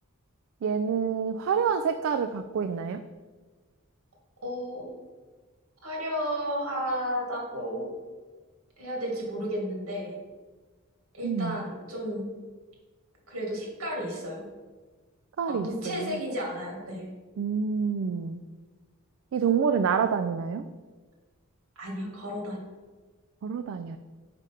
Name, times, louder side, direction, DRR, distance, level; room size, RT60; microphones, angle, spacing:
voice 1, 0.6-3.0 11.2-11.6 15.4-16.2 17.4-18.4 19.3-20.6 23.4-24.0, right 6 dB, 65° right, 9 dB, 0.3 m, -27 dB
voice 2, 4.4-4.9 5.8-7.9 8.8-10.1 11.1-12.3 13.3-14.5 15.5-17.0 21.8-22.6, equal, 80° right, -1 dB, 2.0 m, -33 dB
5.1 x 4.8 x 5.7 m, 1.4 s
head